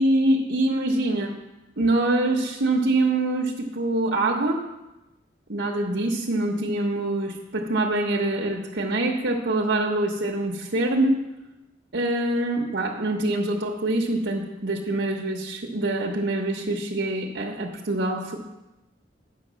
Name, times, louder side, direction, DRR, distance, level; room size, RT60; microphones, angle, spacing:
voice 1, 0.0-1.3 1.8-4.6 5.5-11.2 11.9-18.4, right 2 dB, 75° right, -2 dB, 1.0 m, -24 dB
9.0 x 6.4 x 6.3 m, 0.99 s
head